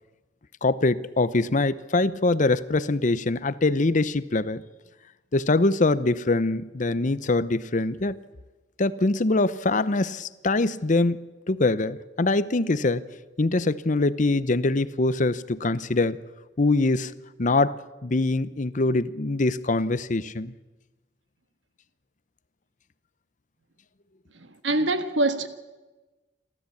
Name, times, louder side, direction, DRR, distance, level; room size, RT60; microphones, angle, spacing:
voice 1, 0.6-4.6 5.3-8.2 8.8-11.2 11.5-13.0 13.4-16.2 16.6-17.1 17.4-17.8 18.0-20.5, left 2 dB, 45° left, 0.7 m, -23 dB
voice 2, 24.6-25.5, right 2 dB, 85° right, 1.7 m, -23 dB
28.0 x 13.0 x 8.5 m
head